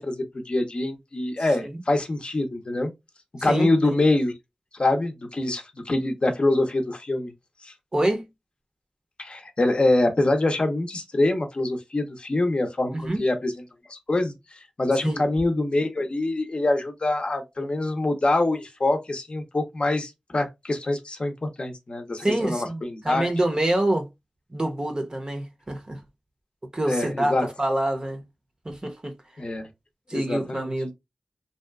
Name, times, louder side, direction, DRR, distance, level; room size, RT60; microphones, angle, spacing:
voice 1, 0.0-2.9 3.4-4.3 4.7-7.3 7.6-7.7 9.2-13.5 13.9-23.3 26.9-27.5 29.4-29.7 30.1-30.7, left 2 dB, 50° left, 0.6 m, -25 dB
voice 2, 3.5-3.9 7.9-8.3 12.9-13.2 15.0-15.2 22.2-24.1 24.5-26.0 26.7-28.2 28.6-29.1 30.1-30.9, right 1 dB, 35° right, 0.6 m, -26 dB
2.6 x 2.2 x 2.2 m
wide cardioid pair, 65°, 2 cm